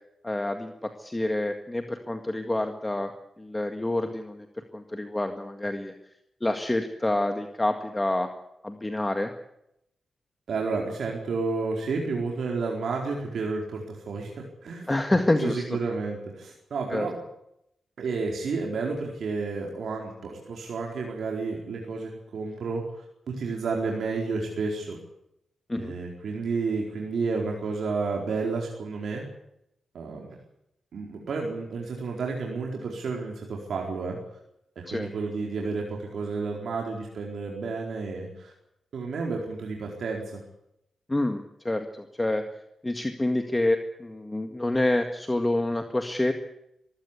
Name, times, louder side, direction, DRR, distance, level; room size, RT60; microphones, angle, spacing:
voice 1, 0.2-3.1 3.4-5.9 6.4-8.3 8.6-9.3 14.9-15.8 16.9-17.1 25.7-25.9 34.9-35.1 41.1-42.4 42.8-46.3, left 1 dB, 15° left, 6 dB, 1.9 m, -27 dB
voice 2, 10.5-14.9 15.4-17.2 18.0-25.0 25.8-29.2 29.9-30.3 30.9-34.2 34.8-38.5 38.9-40.4, right 4 dB, 75° right, 0 dB, 4.4 m, -31 dB
23.0 x 15.5 x 8.3 m, 0.81 s
cardioid pair, 85°, 0 cm